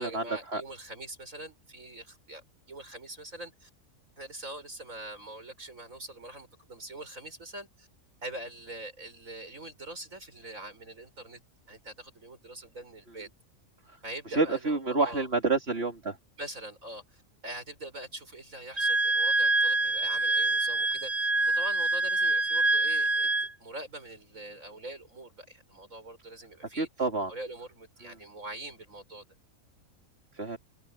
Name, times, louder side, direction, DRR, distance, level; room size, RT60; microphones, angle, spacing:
voice 1, 0.0-3.7 4.2-7.9 8.2-11.4 11.7-13.3 14.0-15.3 16.4-29.2, right 1 dB, 75° right, 7.3 m, -43 dB
voice 2, 14.3-16.2 26.8-27.3 30.3-30.6, right 3 dB, 50° right, 3.4 m, -28 dB
Wind instrument woodwind instrument, 18.8-23.5, right 2 dB, 30° right, 2.6 m, -26 dB
open air
omnidirectional pair, 1.4 m